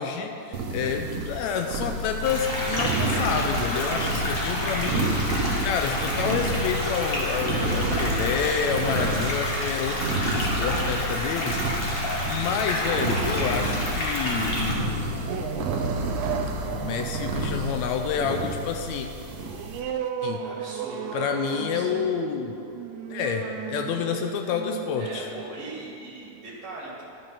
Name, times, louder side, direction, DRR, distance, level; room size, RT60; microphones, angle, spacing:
voice 1, 0.0-11.6 11.9-16.0 16.6-19.1 20.2-20.4 21.1-22.6 23.1-25.3, left 7 dB, 80° left, 5 dB, 1.7 m, -29 dB
sound 1, 0.5-19.8, right 2 dB, 60° right, 1.7 m, -30 dB
sound 2, 2.2-14.7, left 1 dB, 55° left, 0.6 m, -29 dB
sound 3, 15.0-26.2, right 8 dB, 80° right, 1.7 m, -35 dB
voice 2, 20.4-22.1 25.0-27.0, right 2 dB, 35° right, -4 dB, 2.5 m, -40 dB
11.0 x 6.9 x 5.6 m, 2.6 s
omnidirectional pair, 3.7 m